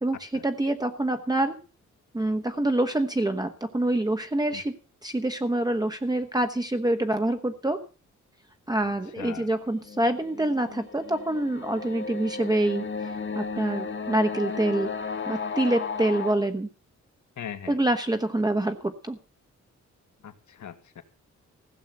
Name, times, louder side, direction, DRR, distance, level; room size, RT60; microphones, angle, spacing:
voice 1, 0.0-1.6 2.1-4.7 5.0-7.8 8.7-14.9 15.3-16.7 17.7-19.2, right 1 dB, 15° right, 6 dB, 1.1 m, -26 dB
voice 2, 8.8-9.5 17.4-17.8 20.2-21.0, left 9 dB, 75° left, 9 dB, 1.9 m, -40 dB
sound 1, 9.7-16.3, left 5 dB, 40° left, 1.5 m, -34 dB
16.0 x 7.3 x 7.9 m, 0.36 s
wide cardioid pair, 120°, 30 cm